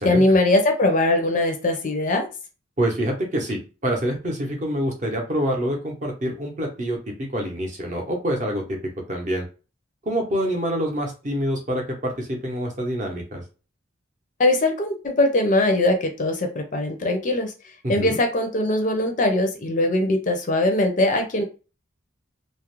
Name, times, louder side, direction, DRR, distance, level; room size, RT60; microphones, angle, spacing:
voice 1, 0.0-2.3 14.4-17.5 17.9-21.4, left 2 dB, 40° left, 5 dB, 0.4 m, -21 dB
voice 2, 2.8-7.0 7.3-8.8 9.1-9.4 10.1-13.4 17.8-18.2, equal, 35° right, 1 dB, 0.6 m, -26 dB
2.4 x 2.0 x 2.9 m, 0.33 s
head